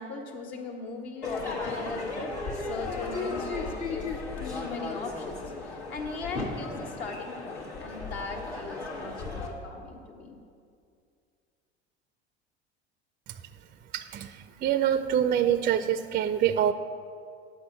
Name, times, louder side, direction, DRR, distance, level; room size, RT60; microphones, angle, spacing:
voice 1, 0.0-10.4, left 4 dB, 65° left, 1 dB, 1.6 m, -39 dB
Crowd / Fireworks, 1.2-9.5, left 3 dB, 85° left, 1.5 m, -35 dB
voice 2, 13.9-16.7, right 10 dB, 25° right, 11 dB, 0.4 m, -25 dB
8.5 x 5.8 x 7.8 m, 2.3 s
figure-of-eight pair, 70°, 33 cm